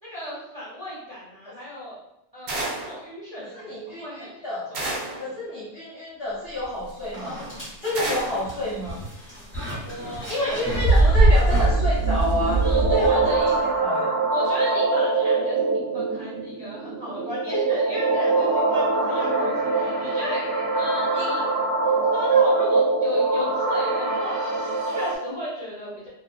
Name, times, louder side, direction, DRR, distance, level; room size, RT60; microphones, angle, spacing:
voice 1, 0.0-2.0 2.3-5.3 8.7-9.4 9.8-10.6 10.9-11.4 12.6-13.8 14.3-21.4 22.1-26.1, equal, 30° right, -10 dB, 0.9 m, -35 dB
sound 1, 2.5-3.0 4.7-5.3 7.9-8.5, right 2 dB, 85° right, 1.1 m, -30 dB
voice 2, 3.4-4.7 5.2-7.5 7.8-9.0 10.3-14.1 21.1-21.5, left 1 dB, 55° left, -8 dB, 0.8 m, -29 dB
sound 2, 6.6-6.7 7.1-13.5, right 2 dB, 10° left, 0.8 m, -22 dB
sound 3, 11.6-25.1, right 3 dB, 65° right, 0.8 m, -23 dB
2.5 x 2.3 x 2.3 m, 0.83 s
omnidirectional pair, 1.5 m